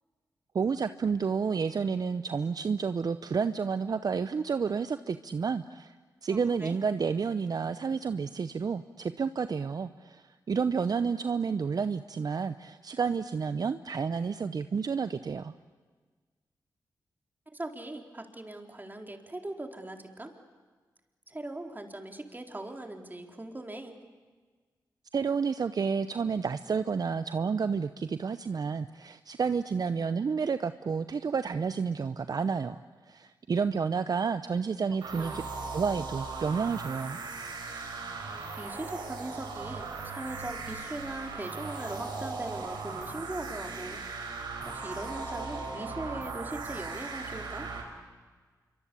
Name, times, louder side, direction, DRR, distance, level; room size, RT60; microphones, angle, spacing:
voice 1, 0.5-5.9 6.2-15.5 25.1-32.8 33.1-35.4 35.7-37.2, right 5 dB, 60° right, 11 dB, 0.8 m, -30 dB
voice 2, 6.3-6.8 17.5-20.3 21.3-24.0 35.1-35.4 38.6-44.0 44.6-47.7, right 2 dB, 25° right, 4 dB, 4.0 m, -40 dB
sound 1, 35.0-47.8, right 4 dB, 85° right, 4.6 m, -38 dB
26.5 x 24.0 x 8.5 m, 1.4 s
cardioid pair, 50°, 8 cm